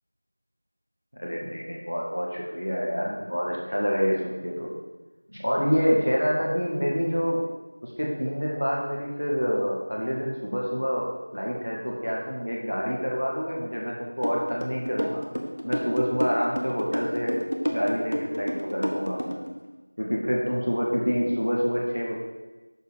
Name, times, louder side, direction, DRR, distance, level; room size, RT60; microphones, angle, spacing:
voice 1, 1.1-4.7 5.3-7.4 7.8-15.2 15.6-17.4 17.7-19.4 20.0-22.1, equal, 20° left, -2 dB, 0.5 m, -27 dB
sound 1, 14.2-19.5, equal, 55° left, 0.9 m, -29 dB
6.2 x 4.5 x 4.8 m, 1.2 s
figure-of-eight pair, 180°, 0 cm